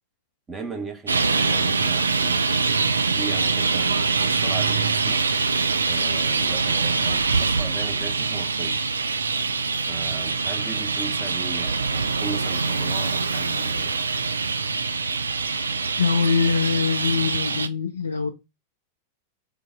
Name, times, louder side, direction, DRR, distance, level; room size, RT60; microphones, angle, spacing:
voice 1, 0.5-2.5 3.2-5.2 5.8-8.8 9.9-13.9, right 4 dB, 15° right, 1.2 m, -37 dB
Traffic noise roadway noise, 1.1-17.7, right 4 dB, 75° right, 0.3 m, -24 dB
voice 2, 16.0-18.3, left 5 dB, 75° left, 0.5 m, -23 dB
3.8 x 3.5 x 3.8 m
figure-of-eight pair, 90°, 0 cm